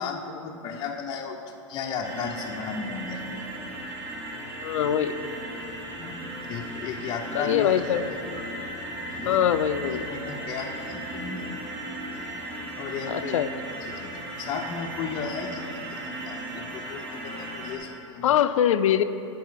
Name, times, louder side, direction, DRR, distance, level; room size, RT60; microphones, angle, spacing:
voice 1, 0.0-3.4 6.0-7.8 9.1-9.4 10.0-11.5 12.8-13.5 14.0-18.4, left 5 dB, 25° left, 0 dB, 0.5 m, -35 dB
sound 1, 2.0-17.8, right 1 dB, 35° right, 1.4 m, -36 dB
voice 2, 4.6-5.3 7.3-8.0 8.3-8.5 9.3-10.1 13.1-13.5 18.2-19.0, left 10 dB, 80° left, 12 dB, 0.4 m, -23 dB
9.3 x 4.2 x 6.5 m, 2.8 s
hypercardioid pair, 130°, 16 cm